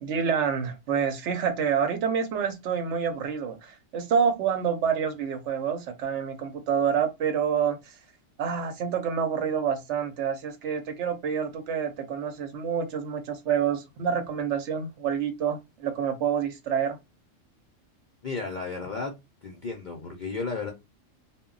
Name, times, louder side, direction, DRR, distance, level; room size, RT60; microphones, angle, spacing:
voice 1, 0.0-7.9 8.4-17.0, right 7 dB, 70° right, 0.9 m, -27 dB
voice 2, 18.2-19.2 19.4-20.7, left 4 dB, 60° left, 0.5 m, -33 dB
2.1 x 2.1 x 3.6 m
omnidirectional pair, 1.3 m